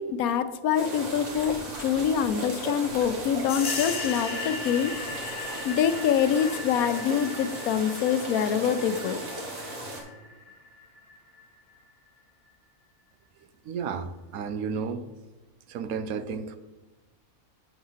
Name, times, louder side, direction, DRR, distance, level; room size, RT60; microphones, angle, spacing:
voice 1, 0.0-5.2 5.6-9.2, left 8 dB, 80° left, 11 dB, 1.1 m, -25 dB
sound 1, 0.8-10.0, right 1 dB, 55° right, 2.0 m, -37 dB
sound 2, 3.5-11.8, left 4 dB, 50° left, 1.0 m, -38 dB
voice 2, 13.6-15.0 15.7-16.6, right 6 dB, 80° right, 10 dB, 1.1 m, -32 dB
7.9 x 4.8 x 5.6 m, 1.1 s
omnidirectional pair, 1.5 m